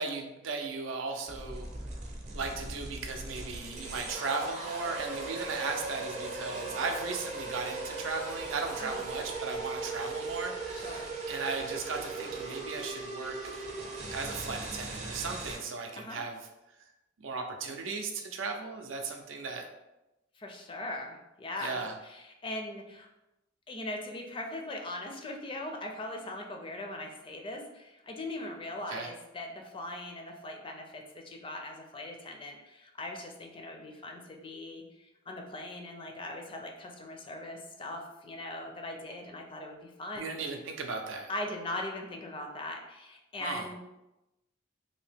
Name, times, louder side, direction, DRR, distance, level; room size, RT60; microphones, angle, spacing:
voice 1, 0.0-1.7 2.3-13.6 14.1-16.4 17.2-19.7 21.6-21.9 28.9-29.1 40.2-41.3 43.4-43.7, right 4 dB, 80° right, 4 dB, 0.5 m, -36 dB
sound 1, 1.3-15.6, right 3 dB, 40° right, 0.6 m, -38 dB
voice 2, 10.8-11.1 16.0-16.2 20.4-23.1 23.7-40.4 41.3-43.8, left 2 dB, 25° left, 3 dB, 0.4 m, -40 dB
2.8 x 2.7 x 3.4 m, 0.95 s
head